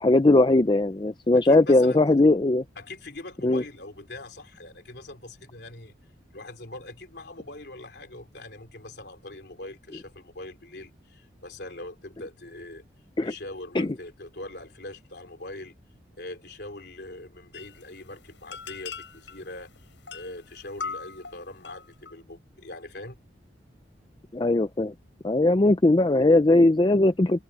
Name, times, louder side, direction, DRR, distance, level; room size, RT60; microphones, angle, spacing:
voice 1, 0.0-2.6 3.4-3.6 13.2-13.3 13.7-13.9 24.3-24.9 25.2-27.4, left 2 dB, 25° left, 0.5 m, -19 dB
voice 2, 1.3-2.0 2.8-5.9 6.3-12.8 13.2-15.7 16.2-19.7 20.1-23.2, left 2 dB, 60° left, 3.6 m, -42 dB
sound 1, 17.5-22.1, left 5 dB, 80° left, 6.2 m, -41 dB
head